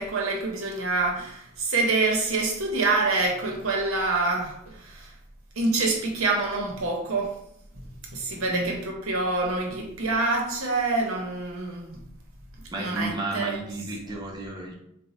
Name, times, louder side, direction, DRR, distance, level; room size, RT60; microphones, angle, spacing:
voice 1, 0.0-5.1 5.6-7.4 8.1-12.0 12.8-13.6, right 3 dB, 85° right, 0 dB, 0.8 m, -26 dB
voice 2, 8.4-8.8 12.7-14.7, right 2 dB, 20° right, -1 dB, 0.5 m, -33 dB
4.0 x 2.1 x 2.9 m, 0.75 s
head